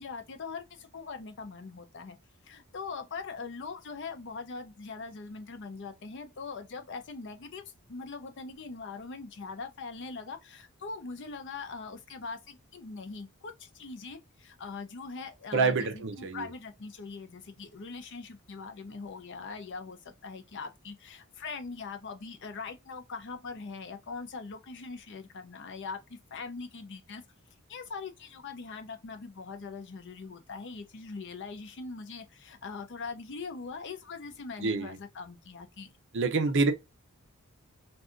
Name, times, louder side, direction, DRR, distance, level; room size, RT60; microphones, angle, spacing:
voice 1, 0.0-2.2 2.4-7.6 7.9-27.2 27.7-35.9, left 4 dB, 55° left, 0.6 m, -41 dB
voice 2, 15.5-16.5 34.6-35.0 36.1-36.7, right 4 dB, 55° right, 0.6 m, -27 dB
2.6 x 2.4 x 3.7 m
head